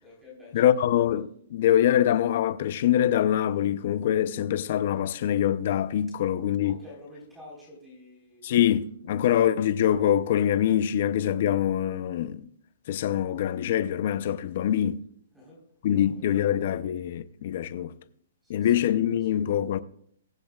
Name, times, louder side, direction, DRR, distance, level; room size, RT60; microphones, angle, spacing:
voice 1, 0.0-0.8 6.6-8.6 15.3-15.6 15.9-16.6 18.4-19.2, left 2 dB, 5° right, 4.3 m, -49 dB
voice 2, 0.5-6.8 8.4-12.4 12.9-15.0 15.8-17.9 18.5-19.8, left 10 dB, 45° left, 0.6 m, -24 dB
22.0 x 8.6 x 2.4 m
hypercardioid pair, 160°, 0 cm